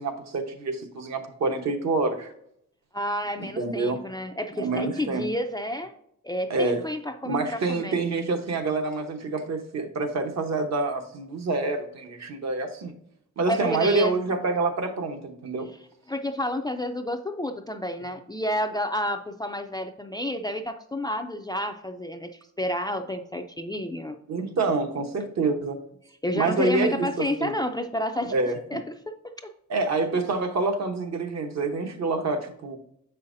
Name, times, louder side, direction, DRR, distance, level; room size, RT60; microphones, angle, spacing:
voice 1, 0.0-2.3 3.6-4.0 4.6-5.3 6.5-6.8 7.2-12.9 13.4-15.7 24.3-25.8 26.3-27.5 28.3-28.6 29.7-32.8, right 3 dB, 60° right, 4 dB, 1.0 m, -27 dB
voice 2, 2.9-5.9 6.2-8.0 13.5-14.1 16.1-24.2 26.2-28.3 28.7-28.9 29.4-29.5, left 1 dB, 15° left, 6 dB, 0.3 m, -30 dB
7.0 x 5.5 x 2.6 m, 0.72 s
wide cardioid pair, 155°, 30 cm